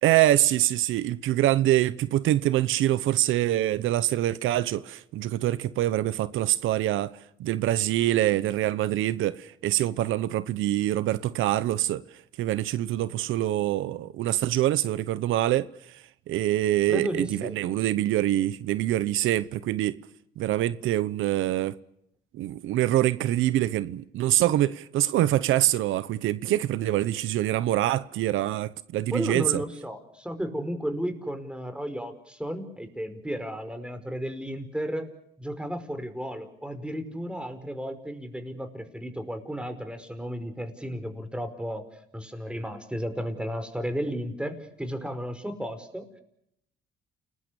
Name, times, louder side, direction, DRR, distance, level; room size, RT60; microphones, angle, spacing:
voice 1, 0.0-12.0 12.4-20.0 20.4-21.7 22.3-29.6, right 14 dB, 85° right, 0.9 m, -25 dB
voice 2, 16.9-17.5 29.1-35.1 35.4-41.8 42.1-46.2, equal, 5° right, 5.2 m, -33 dB
29.5 x 20.0 x 7.0 m
cardioid pair, 90°, 20 cm